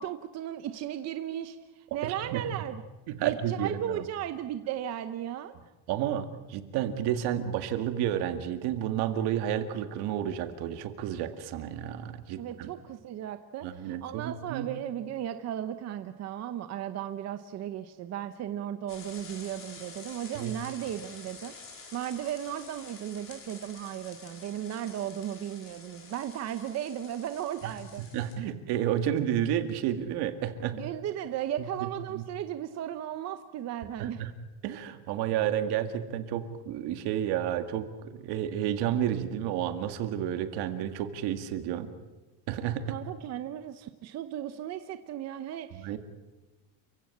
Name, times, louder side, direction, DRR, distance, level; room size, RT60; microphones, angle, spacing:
voice 1, 0.0-1.6 1.9-2.8 3.2-5.5 12.4-28.1 30.7-34.2 42.9-45.9, right 11 dB, 40° right, 9 dB, 0.9 m, -36 dB
voice 2, 2.0-2.4 3.1-4.0 5.9-12.7 13.6-14.7 20.3-20.5 28.1-30.8 32.1-32.2 34.0-34.3 34.6-41.9 42.5-43.0 45.7-46.0, right 10 dB, 70° right, 8 dB, 2.2 m, -31 dB
sound 1, 18.9-28.3, left 4 dB, 30° left, 4.1 m, -49 dB
29.0 x 16.0 x 8.5 m, 1.1 s
cardioid pair, 175°, 40 cm